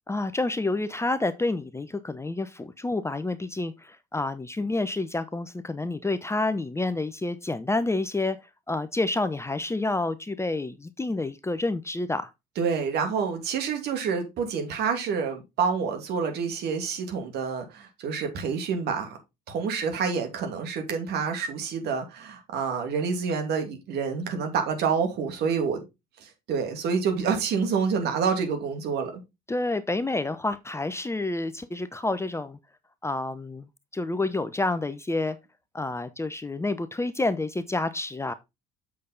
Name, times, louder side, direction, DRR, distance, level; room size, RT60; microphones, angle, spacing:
voice 1, 0.1-8.4 8.7-12.3 29.5-32.6 33.0-33.7 33.9-35.4 35.7-38.3, left 2 dB, 15° left, 0.8 m, -29 dB
voice 2, 12.6-19.2 19.5-25.8 26.2-29.1, right 6 dB, 55° right, 2.6 m, -28 dB
7.2 x 6.6 x 3.9 m
hypercardioid pair, 60°, 20 cm